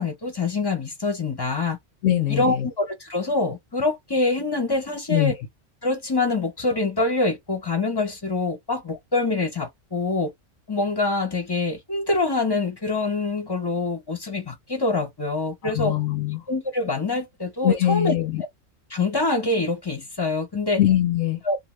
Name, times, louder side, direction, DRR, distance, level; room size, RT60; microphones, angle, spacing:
voice 1, 0.0-1.8 2.3-5.4 5.8-10.3 10.7-15.9 16.5-18.1 18.9-20.8 21.4-21.6, left 3 dB, 25° left, 0.5 m, -25 dB
voice 2, 2.0-2.7 5.1-5.3 15.6-16.4 17.6-18.4 20.8-21.4, left 12 dB, 80° left, 1.0 m, -22 dB
2.7 x 2.1 x 3.0 m
omnidirectional pair, 1.3 m